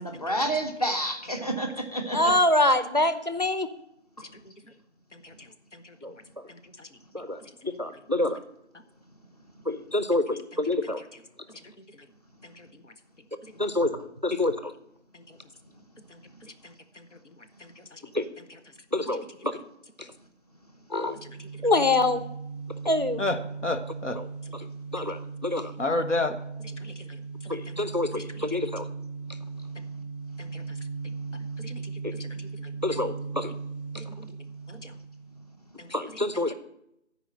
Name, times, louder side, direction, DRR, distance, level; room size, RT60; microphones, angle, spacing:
voice 1, 0.0-2.4, right 1 dB, 30° left, 4 dB, 1.0 m, -29 dB
voice 2, 2.1-3.7 6.0-6.1 7.1-8.4 9.7-11.0 13.6-14.7 18.1-18.3 18.9-19.5 20.9-21.2 21.6-22.2 22.8-23.2 24.9-25.7 27.5-28.9 32.0-32.1 32.8-33.5 35.9-36.5, left 2 dB, 40° right, 12 dB, 0.4 m, -26 dB
voice 3, 5.1-5.9 6.5-6.9 12.4-12.7 13.4-13.7 15.1-15.4 16.1-17.1 17.6-18.0 19.2-19.3 20.0-20.1 21.2-21.6 23.2-24.2 25.0-25.1 25.8-26.4 26.6-27.2 27.4-27.9 28.1-28.5 30.4-30.6 31.6-33.0 33.9-34.3 34.7-34.9 35.8-36.5, left 2 dB, 80° left, 9 dB, 1.2 m, -35 dB
sound 1, 21.0-35.5, right 4 dB, 15° left, 4.1 m, -38 dB
13.0 x 5.0 x 6.4 m, 0.80 s
figure-of-eight pair, 170°, 36 cm